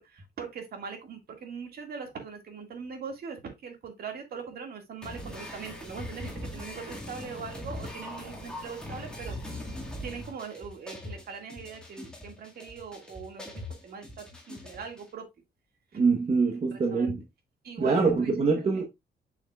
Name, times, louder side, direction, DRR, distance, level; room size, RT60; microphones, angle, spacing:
voice 1, 0.0-9.4 10.0-15.3 15.9-16.0 16.4-17.1 17.6-18.3, right 6 dB, 60° right, 2.0 m, -41 dB
sound 1, 5.0-15.0, left 1 dB, 5° left, 1.9 m, -41 dB
voice 2, 15.9-17.2 17.8-18.8, right 4 dB, 35° right, 1.1 m, -24 dB
7.2 x 6.3 x 2.3 m
wide cardioid pair, 160°, 18 cm